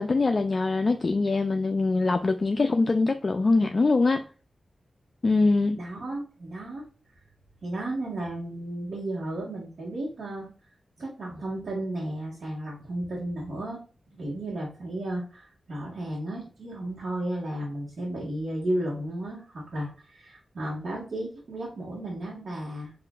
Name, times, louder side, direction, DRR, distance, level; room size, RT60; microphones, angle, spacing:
voice 1, 0.0-4.2 5.2-5.8, left 3 dB, 45° left, 0.3 m, -23 dB
voice 2, 5.7-6.9 7.6-10.5 11.0-13.8 14.2-22.9, right 1 dB, 75° right, 1.2 m, -33 dB
4.9 x 2.4 x 2.3 m
cardioid pair, 65°, 0 cm